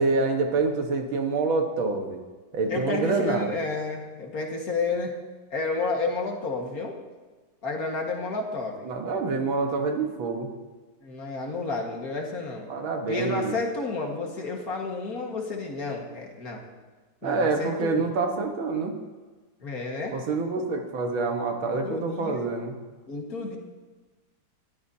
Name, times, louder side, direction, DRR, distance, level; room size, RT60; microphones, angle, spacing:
voice 1, 0.0-2.2 2.5-3.5 8.9-10.5 12.7-13.6 17.2-19.0 20.1-22.8, right 3 dB, 85° right, 4 dB, 2.2 m, -26 dB
voice 2, 2.7-5.1 5.5-7.0 7.6-8.9 11.0-12.7 13.1-16.6 17.2-18.0 19.6-20.2 21.8-22.5 23.1-23.6, left 3 dB, 50° left, 1 dB, 2.0 m, -31 dB
20.5 x 13.0 x 2.8 m, 1.3 s
omnidirectional pair, 2.2 m